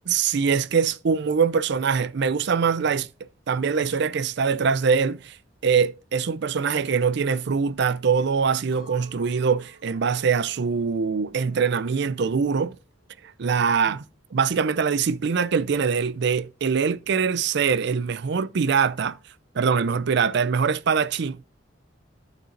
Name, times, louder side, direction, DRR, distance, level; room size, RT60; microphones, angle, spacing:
voice 1, 0.1-3.1 3.5-5.4 5.6-12.7 13.4-14.0 14.3-19.2 19.5-21.4, right 6 dB, 65° right, 0.5 m, -23 dB
Chink clink, 8.7-13.9, right 1 dB, 85° left, 1.7 m, -55 dB
14.0 x 6.0 x 2.6 m
head